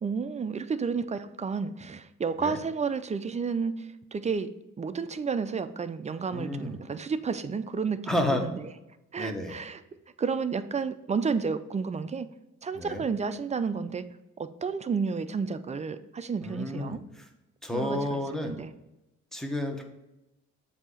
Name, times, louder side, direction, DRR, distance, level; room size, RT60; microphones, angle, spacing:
voice 1, 0.0-4.5 4.8-8.6 9.1-9.8 10.2-12.3 12.6-14.0 14.4-17.0 17.7-18.7, right 5 dB, 25° right, 11 dB, 0.4 m, -31 dB
voice 2, 6.3-6.8 8.1-8.5 9.2-9.6 12.8-13.0 16.4-17.2 17.6-18.6 19.3-19.8, left 1 dB, ahead, 3 dB, 1.0 m, -31 dB
7.4 x 2.8 x 4.9 m, 0.93 s
cardioid pair, 90°, 30 cm